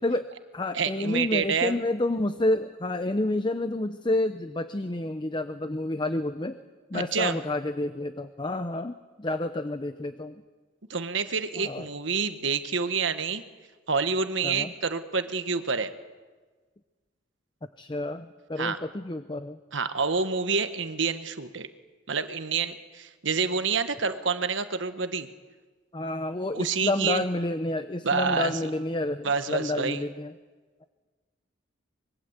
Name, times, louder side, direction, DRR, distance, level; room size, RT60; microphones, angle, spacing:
voice 1, 0.0-6.6 6.9-10.3 11.6-11.9 14.4-14.7 17.8-19.6 25.9-30.3, left 2 dB, 25° left, 10 dB, 0.7 m, -29 dB
voice 2, 0.7-1.8 6.9-7.4 10.9-13.4 13.9-15.9 18.6-18.8 19.7-21.7 22.1-25.3 26.5-27.2 28.0-28.5 29.2-30.0, right 5 dB, 70° right, 10 dB, 1.3 m, -28 dB
25.0 x 22.5 x 8.1 m, 1.4 s
head